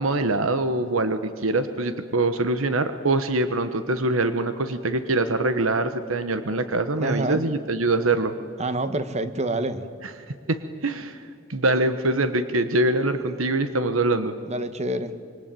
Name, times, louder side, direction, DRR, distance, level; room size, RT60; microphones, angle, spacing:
voice 1, 0.0-8.3 10.0-10.1 10.5-11.2 11.5-14.3, right 2 dB, 85° right, 10 dB, 1.2 m, -24 dB
voice 2, 7.0-7.4 8.6-9.8 14.5-15.1, right 1 dB, 35° right, 10 dB, 1.4 m, -27 dB
25.5 x 23.5 x 9.1 m, 2.2 s
head